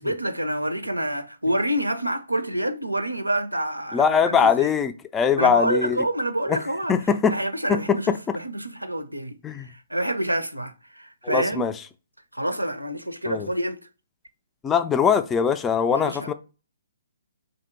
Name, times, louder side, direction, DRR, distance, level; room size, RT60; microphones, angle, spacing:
voice 1, 0.0-4.7 5.4-6.9 7.3-11.7 12.3-13.9 15.9-16.3, right 1 dB, 90° right, 0.5 m, -27 dB
voice 2, 3.9-6.0 6.5-6.6 6.9-7.4 7.7-8.4 9.4-9.7 11.2-11.7 13.3-13.5 14.6-16.3, left 6 dB, 15° left, 0.3 m, -22 dB
3.5 x 2.6 x 4.4 m
figure-of-eight pair, 130°, 0 cm